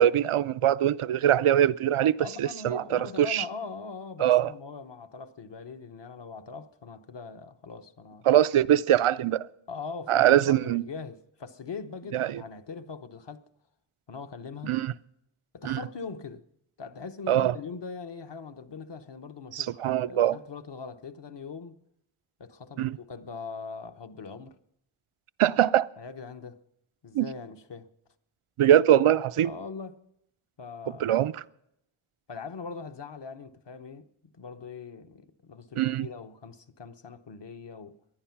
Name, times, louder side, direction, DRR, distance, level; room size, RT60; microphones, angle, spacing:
voice 1, 0.0-3.4 4.2-4.5 8.3-9.5 10.1-10.8 12.1-12.4 14.6-14.9 15.6-15.8 17.3-17.6 19.5-20.4 22.8-23.0 25.4-25.9 27.1-27.3 28.6-29.5 31.0-31.3 35.8-36.1, right 11 dB, 80° right, 0.6 m, -22 dB
voice 2, 2.2-8.3 9.7-13.4 14.1-14.8 15.5-16.4 16.8-21.8 22.4-24.6 26.0-26.6 27.0-27.9 29.4-30.0 30.6-31.2 32.3-38.0, left 5 dB, 55° left, 1.0 m, -41 dB
19.0 x 11.0 x 5.9 m
wide cardioid pair, 65°, 49 cm